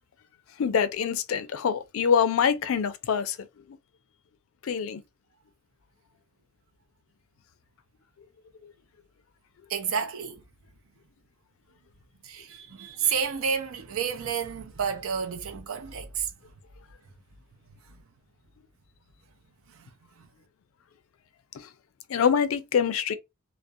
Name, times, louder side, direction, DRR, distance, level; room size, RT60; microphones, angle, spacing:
voice 1, 0.6-3.8 4.6-5.0 8.6-8.7 21.5-21.7 22.1-23.1, left 7 dB, 75° left, 0.4 m, -25 dB
voice 2, 9.7-10.4 12.2-16.3 17.9-18.0 19.7-19.9 20.2-20.3, right 6 dB, 80° right, 0.5 m, -30 dB
2.4 x 2.1 x 2.6 m
head